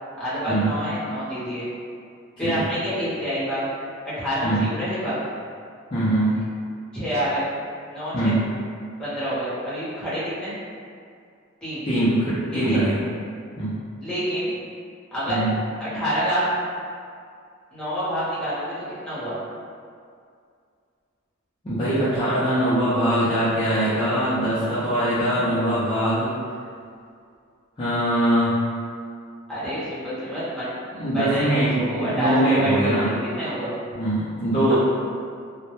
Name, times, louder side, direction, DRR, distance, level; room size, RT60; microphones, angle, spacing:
voice 1, 0.2-1.7 2.4-3.7 4.2-5.2 6.9-7.5 7.9-8.3 9.0-10.5 11.6-11.8 12.5-12.8 14.0-14.5 15.1-15.4 15.8-16.4 17.7-18.7 19.0-19.4 29.5-30.7 31.1-31.5 31.9-33.1 33.3-33.7 34.7-34.8, equal, 5° left, -12 dB, 0.8 m, -27 dB
voice 2, 5.9-6.4 8.1-8.5 11.9-13.0 13.6-13.8 15.3-15.5 21.6-26.3 27.8-28.6 31.0-33.1 33.9-34.7, right 1 dB, 25° left, -12 dB, 0.4 m, -22 dB
2.1 x 2.1 x 2.9 m, 2.3 s
head